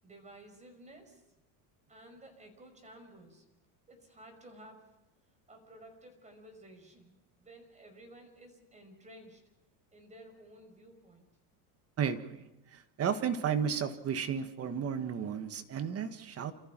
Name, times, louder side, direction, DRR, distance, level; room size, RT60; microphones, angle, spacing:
voice 1, 0.0-1.2 1.9-3.4 3.9-4.9 5.5-9.4 9.9-11.3, right 1 dB, 15° right, 4 dB, 5.5 m, -54 dB
voice 2, 12.0-12.4 12.7-16.5, right 7 dB, 35° right, 9 dB, 1.6 m, -33 dB
29.5 x 14.5 x 6.1 m, 0.93 s
supercardioid pair, 130°, 43 cm